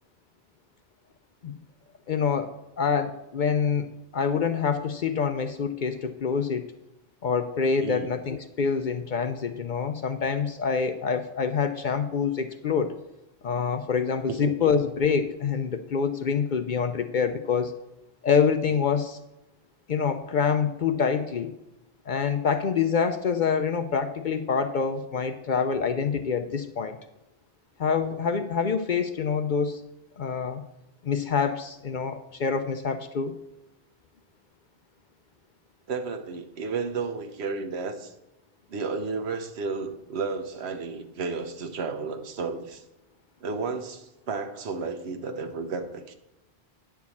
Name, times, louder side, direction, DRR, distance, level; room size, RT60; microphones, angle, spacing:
voice 1, 2.1-3.9 4.1-6.7 7.2-12.9 13.4-17.7 18.2-19.2 19.9-21.5 22.1-27.0 27.8-29.8 30.2-30.6 31.0-33.4, left 6 dB, 55° left, 9 dB, 0.6 m, -26 dB
voice 2, 7.8-8.1 14.3-14.7 35.9-38.1 38.7-42.8 43.4-46.1, right 4 dB, 80° right, 8 dB, 1.1 m, -32 dB
9.4 x 4.6 x 7.1 m, 0.94 s
omnidirectional pair, 1.1 m